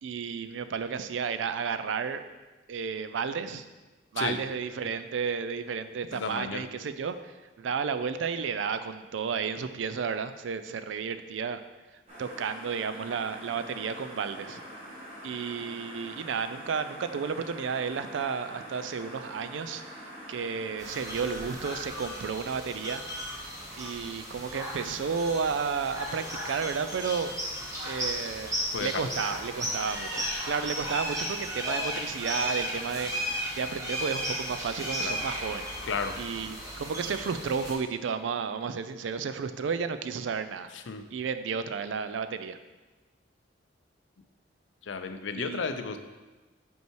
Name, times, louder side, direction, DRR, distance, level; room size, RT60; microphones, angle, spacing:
voice 1, 0.0-2.2 2.7-3.7 4.1-11.6 12.2-14.6 15.2-19.8 20.3-23.0 23.8-27.3 27.8-35.6 36.2-40.7 41.1-42.6 45.3-45.7, right 6 dB, 85° right, 11 dB, 0.4 m, -32 dB
voice 2, 6.1-6.7 28.7-29.1 30.1-30.2 35.0-35.2 35.9-36.2 40.7-41.0 44.8-46.0, left 5 dB, 85° left, 8 dB, 0.5 m, -33 dB
sound 1, 12.1-21.5, equal, 35° right, 2.0 m, -45 dB
sound 2, 20.8-37.7, equal, 20° right, 1.3 m, -35 dB
5.5 x 4.6 x 4.6 m, 1.2 s
head